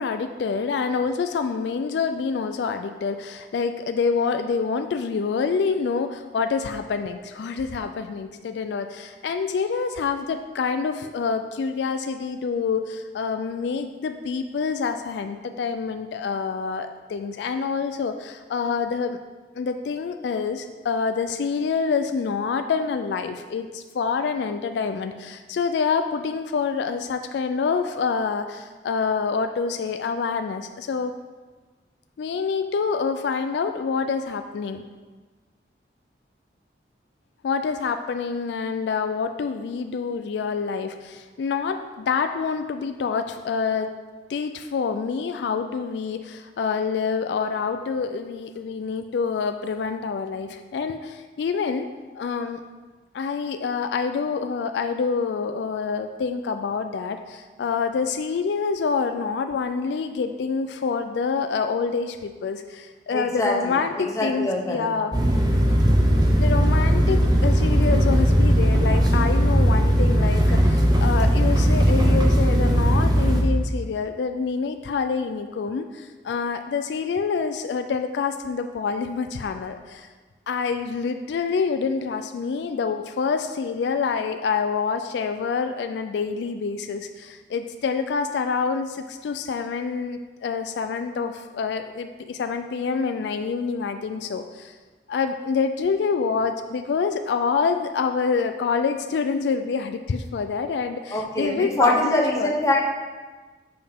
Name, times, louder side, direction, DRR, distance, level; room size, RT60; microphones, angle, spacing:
voice 1, 0.0-19.2 19.5-31.1 32.2-34.8 37.4-43.9 44.3-51.9 52.2-52.6 53.1-65.1 66.4-80.1 80.5-94.7 95.1-102.5, left 5 dB, 75° left, 8 dB, 0.3 m, -27 dB
voice 2, 63.1-64.9 101.1-102.8, left 1 dB, 20° left, -1 dB, 0.8 m, -24 dB
sound 1, 65.1-73.4, equal, 25° right, 0.7 m, -18 dB
6.8 x 5.3 x 3.5 m, 1.3 s
head